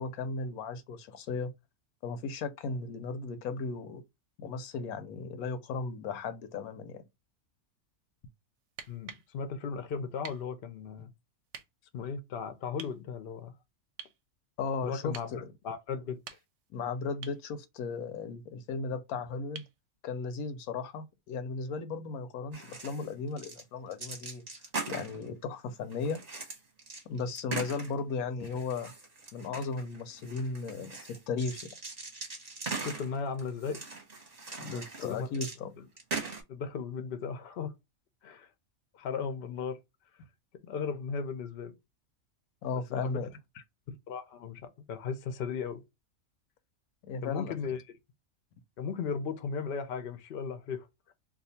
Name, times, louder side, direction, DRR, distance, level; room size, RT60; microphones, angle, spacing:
voice 1, 0.0-1.5 2.0-4.0 4.4-7.0 14.6-15.5 16.7-19.6 20.0-24.5 24.9-26.2 27.1-28.9 29.3-31.7 34.6-35.7 42.6-43.3 47.0-47.7, left 4 dB, 85° left, 1.1 m, -36 dB
sound 1, 8.7-9.3 10.2-10.5 11.5-11.7 12.8-13.0 14.0-14.2 15.1-15.3 16.1-16.7 17.2-17.4 19.6-19.8 21.6-21.7, right 7 dB, 65° right, 0.8 m, -46 dB
voice 2, 8.9-11.1 11.9-13.5 14.8-15.3 15.6-16.2 32.8-33.8 34.5-34.7 35.0-35.3 35.8-35.9 36.5-37.7 38.2-38.5 38.9-39.8 40.6-41.8 42.9-43.2 43.9-45.8 47.2-47.8 48.8-51.1, left 5 dB, 55° left, 0.6 m, -36 dB
sound 2, 22.5-23.1 23.4-23.6 23.9-25.3 25.9-28.1 28.4-35.6 36.0-36.4, right 4 dB, 35° right, 0.9 m, -40 dB
2.6 x 2.4 x 4.0 m
omnidirectional pair, 1.5 m